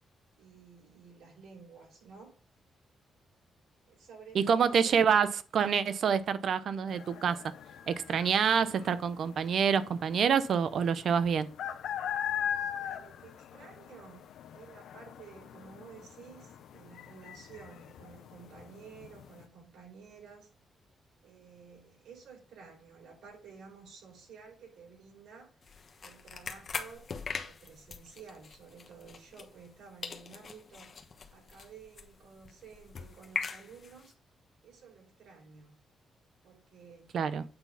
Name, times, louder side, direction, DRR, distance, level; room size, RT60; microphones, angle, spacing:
voice 1, 0.3-2.3 3.8-5.1 12.7-20.5 21.2-25.6 26.0-27.0 27.3-31.0 31.3-34.1 34.6-35.7 36.4-37.1, right 5 dB, 90° right, 4.4 m, -53 dB
voice 2, 4.3-7.4 7.9-11.5 37.1-37.4, right 7 dB, 65° right, 0.7 m, -27 dB
sound 1, 6.9-19.4, left 9 dB, 85° left, 0.6 m, -41 dB
sound 2, 25.6-29.8 30.0-34.1, left 5 dB, 45° left, 1.2 m, -42 dB
8.7 x 4.0 x 5.7 m
cardioid pair, 120°, 0 cm